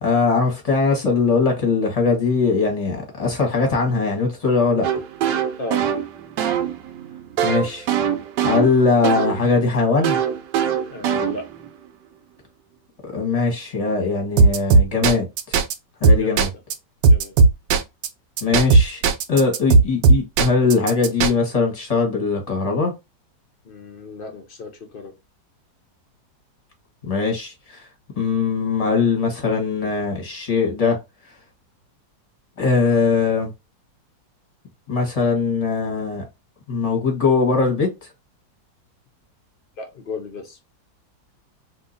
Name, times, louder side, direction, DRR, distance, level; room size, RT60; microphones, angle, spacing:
voice 1, 0.0-4.9 7.4-7.9 8.4-10.2 13.0-15.6 16.0-16.5 18.4-19.0 19.3-22.9 27.0-27.9 28.2-31.0 32.6-33.5 34.9-36.3 36.7-38.1, left 4 dB, 25° left, 1.0 m, -21 dB
sound 1, 4.8-9.4 10.0-11.7 14.4-15.7 16.0-16.7 17.0-18.1 18.4-21.3, right 4 dB, 75° right, 1.1 m, -18 dB
voice 2, 10.9-11.5 16.2-16.5 17.1-17.4 23.6-25.1 39.8-40.6, left 2 dB, 65° left, 0.5 m, -34 dB
2.8 x 2.7 x 3.8 m
omnidirectional pair, 2.0 m